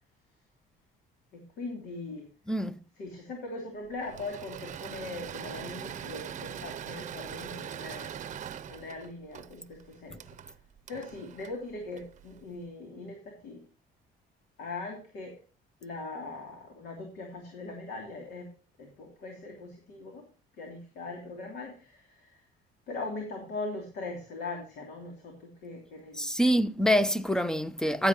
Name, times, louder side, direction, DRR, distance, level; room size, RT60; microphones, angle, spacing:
voice 1, 1.3-2.3 3.0-8.1 8.7-10.2 10.9-13.6 14.6-15.3 15.8-18.5 18.8-20.2 20.6-22.4 22.9-26.4, left 3 dB, 75° left, 3.0 m, -40 dB
voice 2, 2.5-2.8 26.2-28.1, equal, 5° left, 0.6 m, -26 dB
Engine / Mechanisms, 4.0-12.4, right 9 dB, 45° right, 0.7 m, -42 dB
14.5 x 8.4 x 2.9 m
cardioid pair, 110°, 17 cm